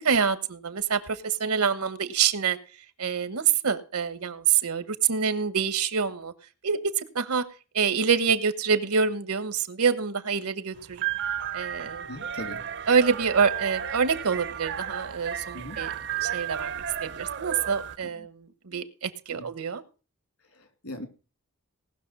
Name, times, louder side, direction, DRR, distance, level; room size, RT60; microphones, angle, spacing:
voice 1, 0.0-2.6 3.0-6.3 6.6-7.4 7.7-11.0 11.5-12.1 12.9-15.9 16.2-19.8, right 6 dB, 85° right, 14 dB, 1.1 m, -26 dB
sound 1, 10.8-18.0, right 9 dB, 55° right, 0.5 m, -33 dB
voice 2, 12.1-12.7 15.5-15.8 18.0-18.3 18.7-18.9 19.3-19.5 20.4-21.1, left 1 dB, 70° left, 9 dB, 2.0 m, -41 dB
18.5 x 6.2 x 5.3 m, 0.35 s
head